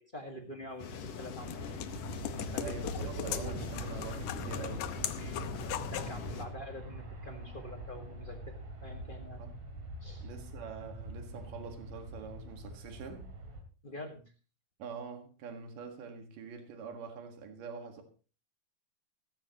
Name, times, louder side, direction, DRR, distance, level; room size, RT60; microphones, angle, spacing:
voice 1, 0.1-1.7 2.5-3.6 5.2-5.5 5.9-9.4 10.0-10.3 13.8-14.2, left 1 dB, 30° left, 0.9 m, -46 dB
sound 1, 0.8-6.5, left 5 dB, 85° left, 3.1 m, -42 dB
sound 2, 0.9-6.2, left 11 dB, 70° left, 2.0 m, -40 dB
Aircraft, 1.4-13.6, right 1 dB, 60° right, 3.5 m, -44 dB
voice 2, 2.6-4.9 9.4-9.5 10.2-13.3 14.8-18.0, right 6 dB, 80° right, 3.4 m, -45 dB
15.0 x 15.0 x 3.0 m
omnidirectional pair, 3.7 m